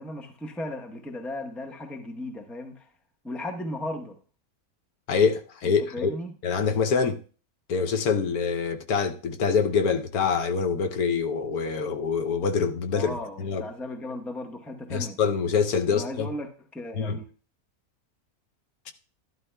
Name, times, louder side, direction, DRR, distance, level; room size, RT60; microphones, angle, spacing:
voice 1, 0.0-2.9 3.2-4.2 5.6-6.3 12.9-15.2 15.9-17.3, left 1 dB, ahead, 0.6 m, -36 dB
voice 2, 5.1-6.1 6.4-7.2 7.7-13.6 14.9-16.3 16.9-17.2, left 5 dB, 75° left, 1.2 m, -25 dB
12.5 x 11.5 x 2.2 m
omnidirectional pair, 1.6 m